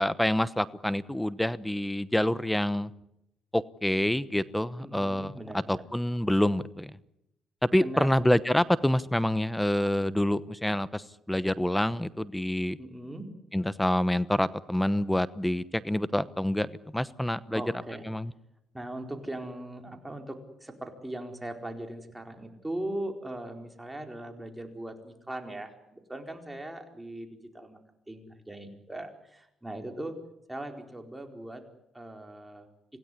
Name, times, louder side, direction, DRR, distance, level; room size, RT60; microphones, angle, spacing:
voice 1, 0.0-2.9 3.5-5.3 5.7-7.0 7.7-11.0 11.3-12.8 13.5-17.6 18.1-18.3, left 1 dB, 5° left, 17 dB, 1.0 m, -27 dB
voice 2, 4.8-5.8 7.8-8.1 12.8-13.3 17.5-18.0 18.7-27.8 28.1-30.2 30.5-31.6 31.9-32.6, right 1 dB, 10° right, 4 dB, 4.5 m, -39 dB
26.5 x 17.0 x 9.9 m, 0.83 s
cardioid pair, 90°, 0 cm